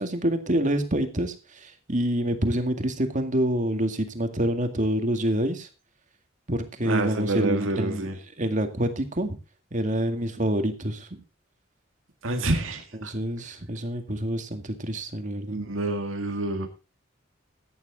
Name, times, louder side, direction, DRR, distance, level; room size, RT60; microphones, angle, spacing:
voice 1, 0.0-5.7 6.5-8.1 8.4-9.4 9.7-11.2 13.0-15.6, right 1 dB, 40° right, 7 dB, 2.0 m, -27 dB
voice 2, 6.8-8.1 12.2-13.1 15.5-16.7, right 2 dB, 90° right, 5 dB, 1.9 m, -28 dB
14.5 x 10.0 x 4.0 m, 0.30 s
head